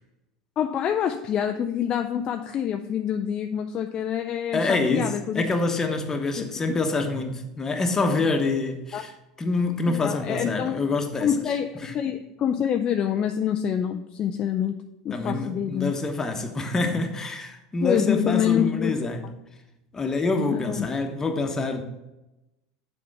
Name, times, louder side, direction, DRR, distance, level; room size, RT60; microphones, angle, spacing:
voice 1, 0.6-5.4 6.4-6.5 8.9-9.0 9.9-10.8 11.2-14.8 15.0-15.9 17.8-18.9 20.5-20.9, left 9 dB, 40° left, 0.4 m, -26 dB
voice 2, 4.5-9.1 9.4-11.3 11.8-11.9 15.1-19.3 19.9-21.8, left 3 dB, 20° left, 1.2 m, -26 dB
7.4 x 4.3 x 5.9 m
hypercardioid pair, 80°, 2 cm